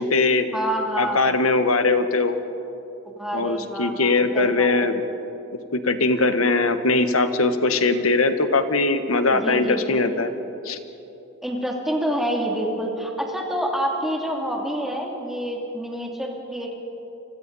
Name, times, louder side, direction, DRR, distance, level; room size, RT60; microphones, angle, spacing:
voice 1, 0.0-0.5 1.0-2.4 3.3-5.0 5.7-10.3 10.6-10.8, left 3 dB, 80° left, 8 dB, 1.4 m, -21 dB
voice 2, 0.5-1.2 3.0-4.7 9.3-10.1 11.4-16.8, equal, ahead, -1 dB, 2.9 m, -27 dB
30.0 x 25.0 x 4.2 m, 3.0 s
head